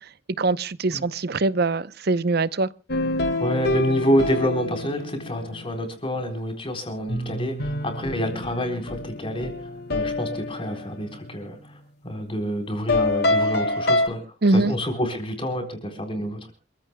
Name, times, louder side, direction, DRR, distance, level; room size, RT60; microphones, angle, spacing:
voice 1, 0.4-2.7 14.4-14.7, right 3 dB, 55° right, 0.7 m, -22 dB
sound 1, 2.9-5.7 7.1-11.6 12.9-14.1, left 2 dB, 60° left, 1.7 m, -26 dB
voice 2, 3.4-9.5 9.9-11.8 12.0-16.5, equal, 30° left, 4.1 m, -27 dB
27.5 x 15.5 x 2.2 m
head